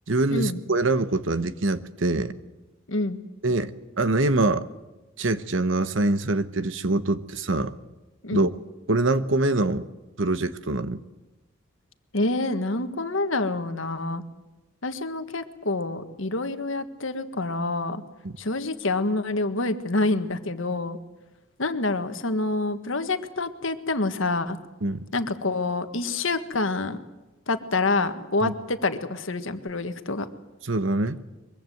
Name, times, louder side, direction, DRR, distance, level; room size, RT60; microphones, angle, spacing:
voice 1, 0.1-2.3 3.4-4.7 5.2-7.7 8.3-8.5 8.9-9.8 10.2-11.0 18.2-18.3 24.8-25.0 28.4-28.5 30.7-31.2, right 2 dB, 65° right, 12 dB, 1.1 m, -24 dB
voice 2, 2.9-3.2 8.2-8.5 12.1-14.2 14.8-18.0 18.4-21.0 21.6-24.6 25.1-27.0 27.5-30.3, left 2 dB, 65° left, 9 dB, 1.6 m, -27 dB
23.0 x 23.0 x 7.9 m, 1.1 s
head